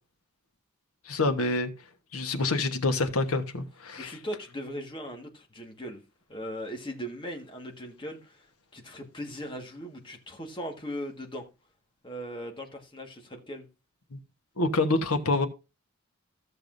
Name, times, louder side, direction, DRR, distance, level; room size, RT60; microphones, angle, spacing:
voice 1, 1.1-1.7 2.1-4.1 14.1-14.2 14.6-15.5, left 2 dB, 85° left, 1.2 m, -27 dB
voice 2, 4.0-6.0 6.3-8.5 8.7-11.4 12.0-13.7, equal, 25° left, 1.6 m, -39 dB
15.0 x 6.9 x 2.6 m
head